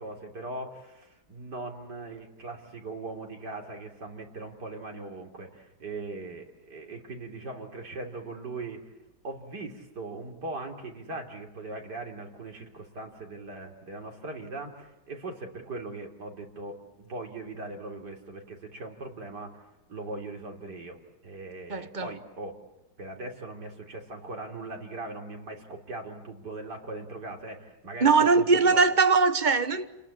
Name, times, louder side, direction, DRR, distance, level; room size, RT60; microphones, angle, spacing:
voice 1, 0.0-8.9 9.2-21.0 21.2-22.5 23.0-28.8, right 2 dB, 70° right, 4.0 m, -40 dB
voice 2, 21.7-22.1 28.0-29.9, right 4 dB, 30° right, 1.2 m, -21 dB
30.0 x 21.5 x 8.8 m
omnidirectional pair, 1.9 m